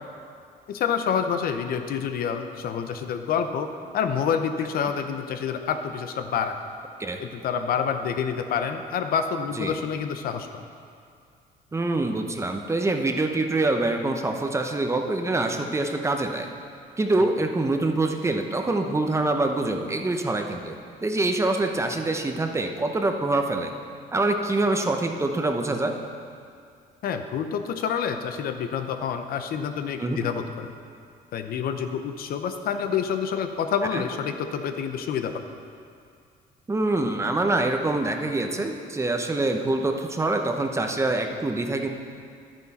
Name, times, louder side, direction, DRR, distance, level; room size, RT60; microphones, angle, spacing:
voice 1, 0.7-6.5 7.2-10.6 27.0-30.7 31.3-35.3, left 7 dB, 60° left, 7 dB, 0.8 m, -28 dB
voice 2, 11.7-16.5 17.0-23.7 24.1-26.0 30.0-30.2 33.9-34.0 36.7-41.9, right 2 dB, 15° right, 4 dB, 0.8 m, -25 dB
11.0 x 9.8 x 4.2 m, 2.3 s
cardioid pair, 110°, 17 cm